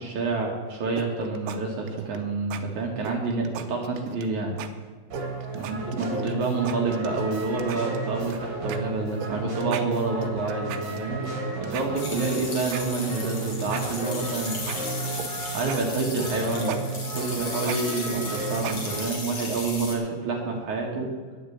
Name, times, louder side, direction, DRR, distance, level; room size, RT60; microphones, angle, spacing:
voice 1, 0.0-4.6 5.5-11.2 11.6-14.6 15.5-16.8 17.1-21.1, right 3 dB, 60° right, 0 dB, 2.1 m, -28 dB
sound 1, 1.0-1.6 1.9-2.2 2.5-2.6 3.0-4.3 4.6-4.7 5.1-6.3 6.7-7.3 7.6-8.4 8.7-8.8 9.2-9.3 9.6-11.3 11.6-13.3 13.6-15.3 15.6-19.2, right 11 dB, 80° right, 2.4 m, -37 dB
sound 2, 5.1-19.1, right 2 dB, 30° right, 5.5 m, -33 dB
sound 3, 11.9-19.9, left 3 dB, 40° left, 1.9 m, -36 dB
10.5 x 8.7 x 8.6 m, 1.5 s
omnidirectional pair, 5.4 m